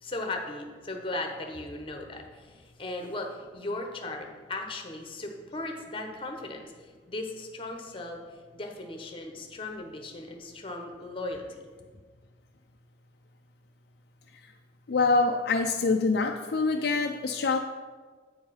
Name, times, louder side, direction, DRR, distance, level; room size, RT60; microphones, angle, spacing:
voice 1, 0.0-8.2 8.5-11.4, left 2 dB, 30° left, 3 dB, 0.9 m, -37 dB
voice 2, 14.9-17.6, left 3 dB, 60° left, 4 dB, 0.4 m, -25 dB
8.3 x 4.7 x 5.6 m, 1.5 s
head